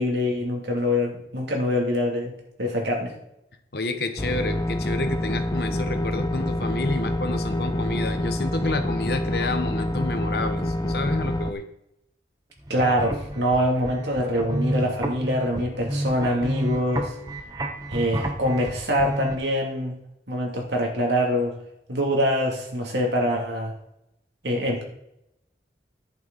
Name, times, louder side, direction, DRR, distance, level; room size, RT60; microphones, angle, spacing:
voice 1, 0.0-2.3 2.6-3.1 12.7-17.1 17.9-19.9 20.3-21.5 21.9-23.7 24.4-24.8, equal, 75° right, 0 dB, 2.5 m, -24 dB
voice 2, 3.7-11.6, left 2 dB, 60° left, 8 dB, 1.0 m, -29 dB
sound 1, 4.2-11.5, left 1 dB, 20° left, 0.5 m, -27 dB
sound 2, 12.6-19.3, right 1 dB, 20° right, 1.0 m, -31 dB
10.5 x 8.7 x 4.0 m, 0.81 s
head